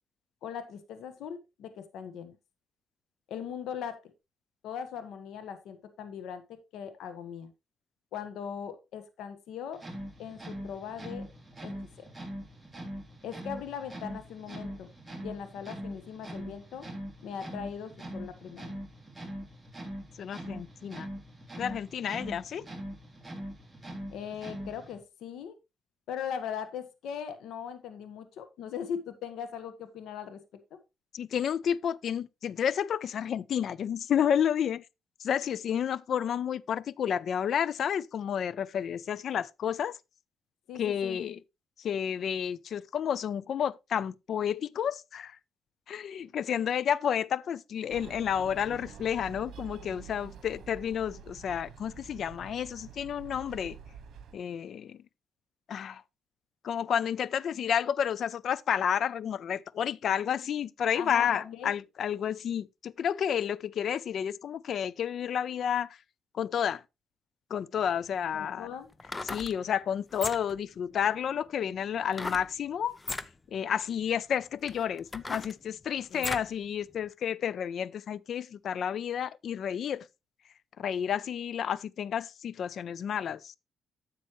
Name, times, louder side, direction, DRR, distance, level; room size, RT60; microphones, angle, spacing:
voice 1, 0.4-2.4 3.3-4.0 4.6-7.5 8.1-9.8 10.2-11.3 11.6-11.7 12.0-12.1 13.2-14.9 15.2-16.9 17.2-18.7 24.1-25.5 26.1-30.4 40.7-41.2 60.9-61.7 68.3-68.9 76.1-76.3, left 8 dB, 80° left, 1.4 m, -39 dB
sound 1, 9.7-25.0, equal, 10° right, 3.4 m, -42 dB
voice 2, 20.2-21.1 21.6-22.6 31.1-34.8 35.2-40.0 40.8-41.4 41.8-45.4 45.9-53.8 54.3-55.0 55.7-56.0 56.6-65.9 66.3-66.8 67.5-68.7 69.3-73.0 73.5-80.1 80.8-83.6, left 8 dB, 60° left, 0.5 m, -31 dB
sound 2, 47.9-54.3, right 8 dB, 65° right, 1.4 m, -47 dB
sound 3, 67.8-67.9 68.9-69.5 70.1-70.6 72.1-72.5 73.0-73.3 74.0-74.1 74.7-76.5 77.0-77.1, left 3 dB, 25° left, 0.7 m, -37 dB
10.5 x 7.5 x 3.1 m
cardioid pair, 90°, 0 cm